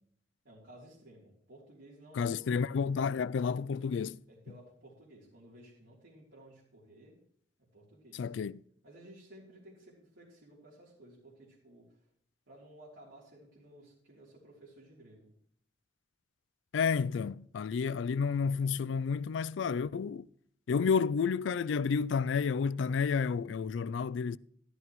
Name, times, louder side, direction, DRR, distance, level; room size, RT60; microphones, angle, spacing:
voice 1, 0.4-2.5 4.3-7.2 7.7-8.3 8.8-12.0 12.5-15.3, right 1 dB, 75° right, 3.4 m, -55 dB
voice 2, 2.1-4.2 8.1-8.6 16.7-20.3 20.7-24.4, left 6 dB, 75° left, 0.4 m, -30 dB
14.0 x 13.0 x 3.1 m
head